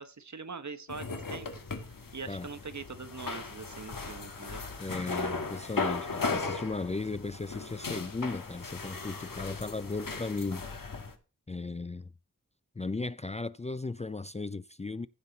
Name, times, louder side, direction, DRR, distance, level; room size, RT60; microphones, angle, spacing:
voice 1, 0.0-1.5 2.1-4.7, right 4 dB, 60° right, 1.2 m, -42 dB
sound 1, 0.9-11.1, left 4 dB, 85° left, 1.7 m, -37 dB
voice 2, 4.8-10.6 11.5-12.1 12.8-15.1, left 3 dB, 20° left, 0.4 m, -36 dB
15.0 x 5.9 x 4.0 m
wide cardioid pair, 75°, 33 cm